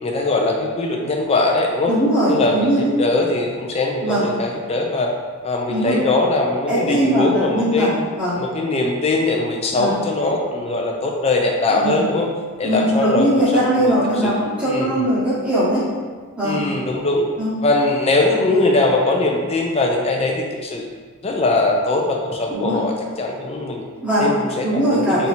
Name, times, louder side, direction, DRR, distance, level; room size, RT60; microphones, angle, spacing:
voice 1, 0.0-1.9 2.3-5.1 5.4-7.9 8.4-12.3 12.6-14.3 14.6-15.1 16.4-17.3 17.6-20.9 21.2-23.8 24.2-25.3, left 2 dB, 30° left, 1 dB, 0.4 m, -21 dB
voice 2, 1.9-2.9 4.0-4.2 5.7-6.0 6.7-8.4 9.7-10.0 11.7-12.0 12.6-15.8 16.4-16.6 17.4-17.5 22.5-22.7 24.0-24.3 24.6-25.3, right 1 dB, 5° right, -10 dB, 1.0 m, -20 dB
2.8 x 2.5 x 4.2 m, 1.5 s
head